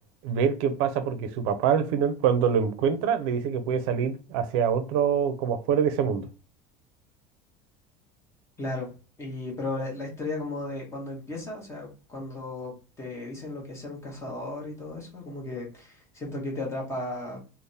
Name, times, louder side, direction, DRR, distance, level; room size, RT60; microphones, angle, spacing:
voice 1, 0.2-6.3, right 7 dB, 75° right, 0.5 m, -25 dB
voice 2, 8.6-8.9 9.2-12.7 13.0-17.4, left 2 dB, 15° left, 0.8 m, -35 dB
3.3 x 2.0 x 2.6 m
cardioid pair, 165°, 17 cm